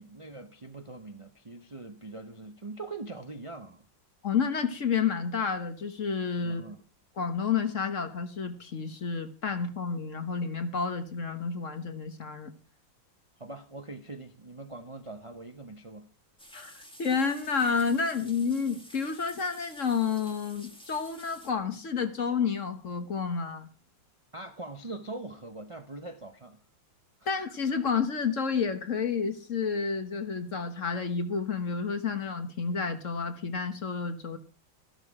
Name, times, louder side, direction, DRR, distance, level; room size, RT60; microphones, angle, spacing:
voice 1, 0.0-3.9 6.4-6.8 13.4-16.1 24.3-26.6 27.2-27.3, right 2 dB, 35° right, 0.5 m, -42 dB
voice 2, 4.2-6.6 7.2-12.5 16.5-23.7 27.3-34.4, left 5 dB, 45° left, 1.4 m, -30 dB
sound 1, 16.4-21.5, equal, 5° left, 1.6 m, -51 dB
14.0 x 12.0 x 4.9 m
omnidirectional pair, 2.1 m